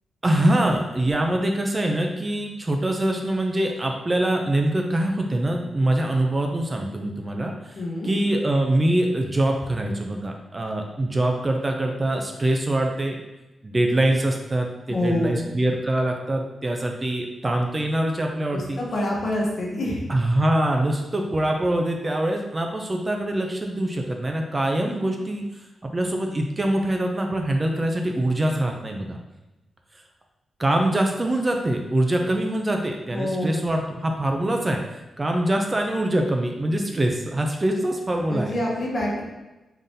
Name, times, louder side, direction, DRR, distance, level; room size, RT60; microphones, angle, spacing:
voice 1, 0.2-7.8 8.0-13.2 13.6-18.8 20.1-25.4 25.8-29.2 30.6-34.8 35.2-38.5, right 1 dB, 25° right, 2 dB, 0.4 m, -24 dB
voice 2, 7.7-8.1 14.9-15.5 18.5-20.0 33.1-33.6 38.3-39.2, left 1 dB, 50° left, -3 dB, 1.0 m, -26 dB
3.8 x 3.5 x 2.7 m, 1.0 s
wide cardioid pair, 120°, 0 cm